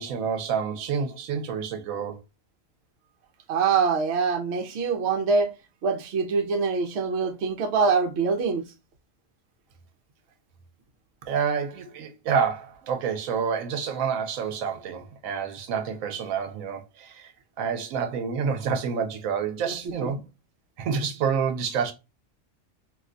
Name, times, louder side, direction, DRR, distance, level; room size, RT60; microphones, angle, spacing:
voice 1, 0.0-2.2 11.3-17.3 17.6-20.2 20.8-21.9, right 6 dB, 90° right, 1.0 m, -28 dB
voice 2, 3.5-5.5 5.8-8.6 19.7-19.8 20.0-20.1, right 5 dB, 60° right, 0.9 m, -24 dB
2.6 x 2.2 x 3.6 m
omnidirectional pair, 1.3 m